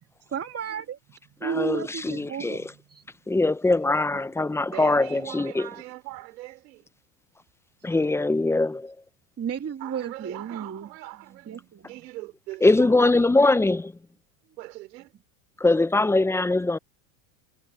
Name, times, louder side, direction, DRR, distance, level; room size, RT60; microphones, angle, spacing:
voice 1, 0.3-1.0 1.4-3.0 4.1-4.2 9.4-10.9 11.3-11.9, right 7 dB, 30° right, 3.0 m, -33 dB
voice 2, 1.4-2.6 3.3-5.7 7.8-8.9 12.6-13.9 15.6-16.8, left 2 dB, 5° left, 0.5 m, -22 dB
voice 3, 4.7-6.8 9.8-13.6 14.6-15.1, right 18 dB, 85° right, 3.9 m, -41 dB
supercardioid pair, 95°, 49 cm